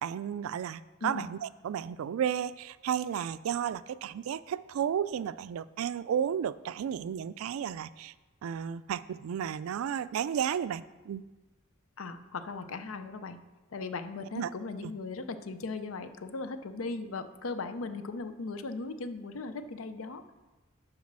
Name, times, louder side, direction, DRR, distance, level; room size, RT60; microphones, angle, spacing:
voice 1, 0.0-8.1 8.4-11.2 14.4-14.5 14.8-14.9, right 8 dB, 80° right, 17 dB, 0.3 m, -33 dB
voice 2, 12.0-13.4 13.7-20.3, left 3 dB, 75° left, 10 dB, 0.6 m, -38 dB
7.3 x 5.0 x 6.0 m, 1.2 s
head